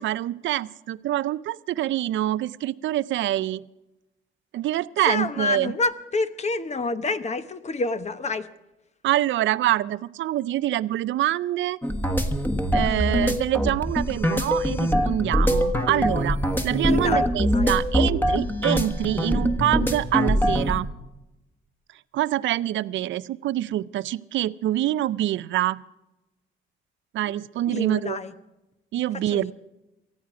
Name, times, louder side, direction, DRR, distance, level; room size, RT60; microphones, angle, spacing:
voice 1, 0.0-3.6 4.5-5.7 9.0-11.8 12.7-20.9 22.1-25.8 27.1-28.2 28.9-29.5, right 13 dB, 70° right, 17 dB, 0.5 m, -25 dB
voice 2, 5.0-8.5 12.9-13.3 16.9-17.7 27.3-27.4 27.7-28.3 29.3-29.5, left 3 dB, 35° left, 11 dB, 1.0 m, -28 dB
sound 1, 11.8-20.8, equal, 10° left, 1.5 m, -23 dB
19.0 x 14.0 x 5.0 m, 0.99 s
cardioid pair, 90°, 20 cm